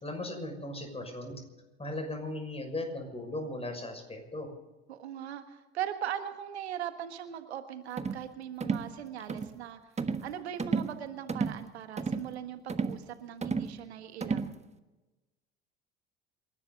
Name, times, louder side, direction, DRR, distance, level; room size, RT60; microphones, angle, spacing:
voice 1, 0.0-1.4 1.8-4.5, left 1 dB, 20° left, 4 dB, 6.1 m, -37 dB
voice 2, 4.9-9.8 10.2-14.6, right 10 dB, 85° right, 9 dB, 1.6 m, -39 dB
sound 1, 8.0-8.2 8.6-8.9 9.3-9.5 10.0-10.3 10.6-11.0 11.3-11.6 12.0-12.3 12.7-13.0 13.4-13.7 14.2-14.5, right 5 dB, 20° right, 1.4 m, -32 dB
28.0 x 12.5 x 4.0 m, 1.1 s
hypercardioid pair, 65°, 32 cm